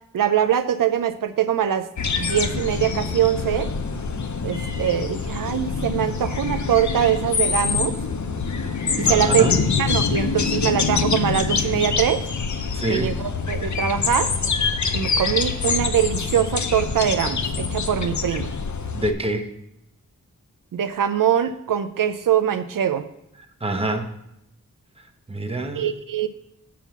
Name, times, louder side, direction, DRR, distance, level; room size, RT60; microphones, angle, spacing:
voice 1, 0.1-1.9 2.2-3.7 4.4-7.9 9.0-9.4 9.8-12.2 12.9-14.3 14.9-18.5 20.7-23.0 25.8-26.3, right 9 dB, 75° right, 9 dB, 0.5 m, -22 dB
sound 1, 2.0-19.1, left 5 dB, 60° left, 0.7 m, -25 dB
voice 2, 9.0-9.6 12.7-13.1 18.9-19.5 23.6-24.1 25.3-25.8, right 1 dB, 20° right, 5 dB, 0.9 m, -25 dB
7.2 x 4.5 x 6.9 m, 0.80 s
wide cardioid pair, 75°, 33 cm